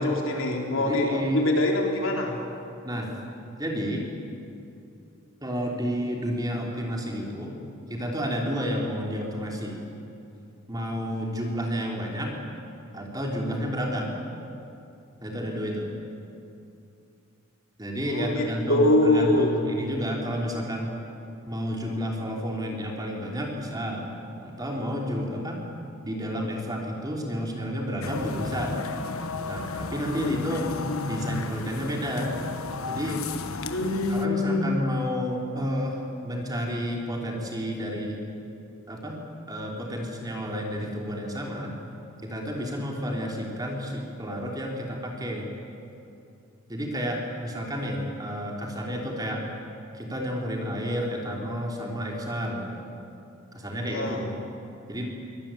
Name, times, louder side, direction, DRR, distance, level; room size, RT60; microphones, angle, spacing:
voice 1, 0.0-2.4 18.1-19.5 33.6-34.7 53.9-54.2, left 2 dB, 65° left, 0 dB, 3.9 m, -24 dB
voice 2, 0.8-1.4 2.8-3.1 3.6-4.1 5.4-7.6 7.9-9.8 10.7-12.3 12.9-14.2 15.2-15.9 17.8-20.9 21.5-24.1 24.4-25.6 26.0-28.8 29.5-30.7 31.1-32.4 32.9-33.2 34.1-38.2 38.9-39.2 39.5-41.8 42.2-45.5 46.7-49.5 49.9-52.8 53.5-54.3 54.9-55.1, equal, 20° right, 0 dB, 3.4 m, -31 dB
sound 1, 28.0-34.2, left 3 dB, 80° left, 1.3 m, -33 dB
23.5 x 19.5 x 9.1 m, 2.7 s
head